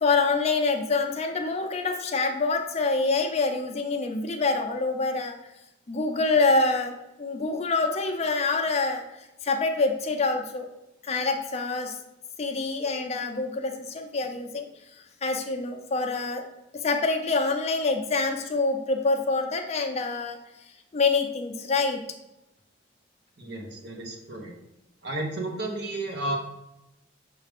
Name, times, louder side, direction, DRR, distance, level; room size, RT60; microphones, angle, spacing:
voice 1, 0.0-5.3 5.9-6.9 7.2-9.0 9.4-10.7 11.0-12.0 12.4-14.7 15.2-16.4 16.7-20.4 20.9-22.0, left 3 dB, 35° left, 4 dB, 0.4 m, -26 dB
voice 2, 23.4-24.5 25.0-26.4, right 2 dB, 65° right, 1 dB, 1.0 m, -32 dB
6.3 x 2.4 x 3.4 m, 0.91 s
head